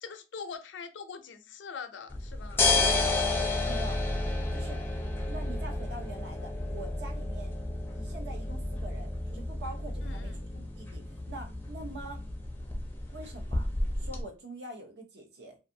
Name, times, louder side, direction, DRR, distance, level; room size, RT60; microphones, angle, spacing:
voice 1, 0.0-2.6 10.0-10.4, left 5 dB, 90° left, 0.4 m, -43 dB
sound 1, 2.1-14.2, left 2 dB, 10° left, 0.4 m, -31 dB
voice 2, 3.6-4.0 4.5-4.8 5.3-7.5 7.9-12.2 13.1-13.7 14.0-15.6, right 2 dB, 65° right, 0.8 m, -44 dB
2.6 x 2.4 x 2.6 m
head